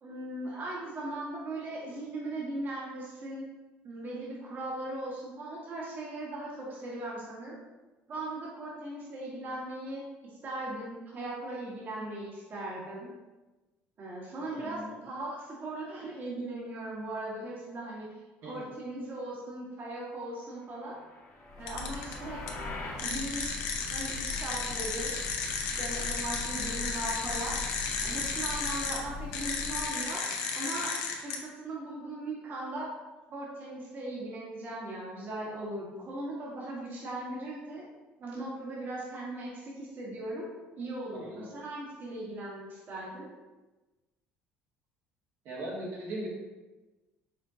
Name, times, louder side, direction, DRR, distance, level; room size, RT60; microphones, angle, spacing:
voice 1, 0.0-3.5 3.8-7.5 8.1-13.1 14.0-18.1 18.4-21.0 21.6-22.4 22.9-25.1 25.8-27.6 28.0-30.2 30.5-31.0 31.2-32.9 33.3-37.8 38.2-40.5 40.7-43.3, right 1 dB, 45° right, -4 dB, 1.3 m, -38 dB
voice 2, 14.5-14.9 18.4-18.5 41.2-41.5 45.4-46.3, right 1 dB, 70° right, -5 dB, 1.4 m, -39 dB
sound 1, 20.8-23.1, left 2 dB, 50° left, 1.0 m, -43 dB
Breathing / Bird, 21.5-30.0, left 2 dB, 10° left, 0.7 m, -42 dB
sound 2, 21.7-22.1 22.5-22.6 23.0-29.0 29.3-31.4, left 5 dB, 80° left, 0.7 m, -34 dB
5.1 x 3.6 x 2.7 m, 1.2 s
supercardioid pair, 95°, 5 cm